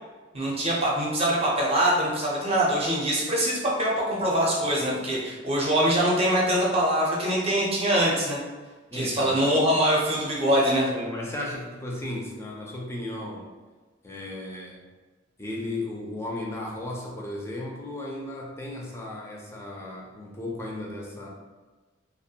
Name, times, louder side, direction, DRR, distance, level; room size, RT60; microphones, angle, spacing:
voice 1, 0.3-8.4 8.9-10.9, right 1 dB, 30° right, -4 dB, 0.6 m, -23 dB
voice 2, 8.9-9.4 10.9-13.5 14.0-14.8 15.4-21.3, left 1 dB, 15° left, -2 dB, 0.4 m, -35 dB
2.4 x 2.2 x 2.7 m, 1.3 s
head